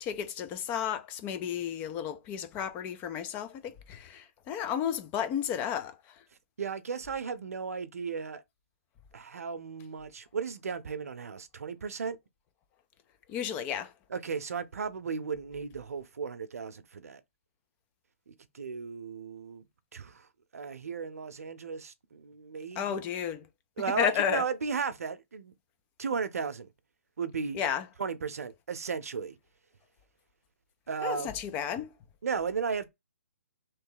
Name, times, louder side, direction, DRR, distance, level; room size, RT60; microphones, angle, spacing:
voice 1, 0.0-6.2 13.3-13.9 22.8-23.5 24.0-24.4 27.5-27.9 31.0-31.9, left 9 dB, 20° left, 0.3 m, -32 dB
voice 2, 6.6-8.4 9.1-12.2 14.1-17.2 18.3-19.6 19.9-20.3 20.5-23.0 23.8-25.5 26.0-26.7 27.2-27.6 28.0-29.4 30.9-31.3 32.2-32.9, right 5 dB, 75° right, 0.6 m, -35 dB
3.1 x 2.7 x 3.8 m
hypercardioid pair, 145°, 8 cm